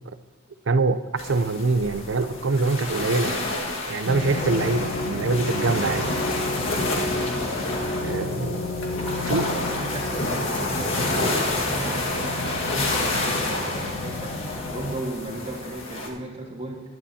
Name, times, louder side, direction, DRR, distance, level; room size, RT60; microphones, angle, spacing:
voice 1, 0.7-3.5 3.9-6.1 8.0-8.6 9.3-9.5, right 3 dB, 65° right, 12 dB, 0.6 m, -24 dB
sound 1, 1.2-16.1, left 2 dB, 75° left, 1.8 m, -29 dB
sound 2, 4.1-15.0, left 2 dB, 35° left, 0.9 m, -31 dB
voice 2, 9.1-10.5 11.0-12.4 12.7-14.4 14.7-16.8, right 1 dB, 30° right, -2 dB, 1.9 m, -35 dB
20.0 x 11.0 x 2.8 m, 1.2 s
head